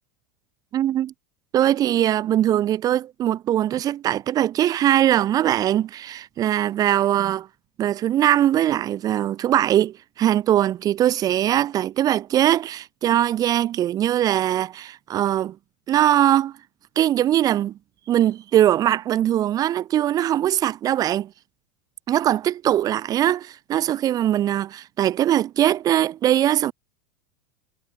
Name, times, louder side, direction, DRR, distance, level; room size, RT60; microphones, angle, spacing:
voice 1, 0.7-1.1 1.5-7.5 7.8-15.6 15.9-16.6 17.0-17.8 18.1-21.3 22.1-26.7, right 12 dB, 40° right, 2.8 m, -21 dB
hypercardioid pair, 85°, 10 cm